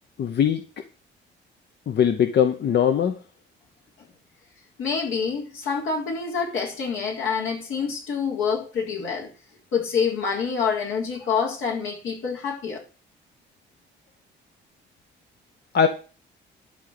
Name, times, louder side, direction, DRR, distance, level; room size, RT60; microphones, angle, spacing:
voice 1, 0.2-0.6 1.9-3.1 15.7-15.9, left 8 dB, 60° left, 1.0 m, -20 dB
voice 2, 4.8-9.3 9.7-12.8, left 6 dB, 80° left, 3.8 m, -27 dB
12.0 x 4.0 x 7.9 m
cardioid pair, 90°, 20 cm